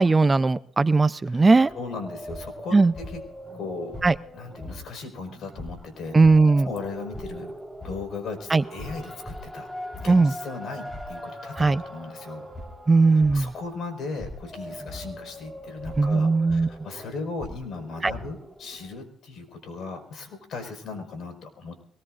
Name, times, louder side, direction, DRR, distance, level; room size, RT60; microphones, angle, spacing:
voice 1, 0.0-1.7 2.7-2.9 4.0-4.2 6.1-6.7 8.5-8.6 10.1-10.3 11.6-11.8 12.9-13.5 16.0-16.7 18.0-18.1, right 3 dB, 25° right, 15 dB, 0.5 m, -18 dB
sound 1, 1.6-19.0, equal, 5° left, 4.1 m, -40 dB
voice 2, 1.7-2.8 3.1-3.2 3.5-4.0 4.3-6.2 6.6-7.5 7.8-9.7 10.0-12.4 13.1-21.8, left 4 dB, 70° left, 5 dB, 4.9 m, -37 dB
23.0 x 20.0 x 2.5 m, 0.64 s
cardioid pair, 90°, 0 cm